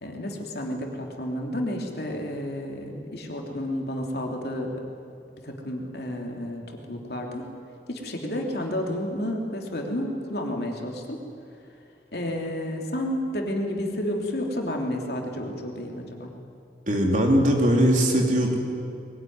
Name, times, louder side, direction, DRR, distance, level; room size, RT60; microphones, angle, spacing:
voice 1, 0.0-4.8 5.4-7.5 7.9-11.2 12.1-16.3, left 1 dB, 60° left, 1 dB, 3.0 m, -31 dB
voice 2, 16.9-18.5, equal, 45° right, 0 dB, 3.3 m, -20 dB
21.5 x 19.0 x 9.5 m, 2.6 s
head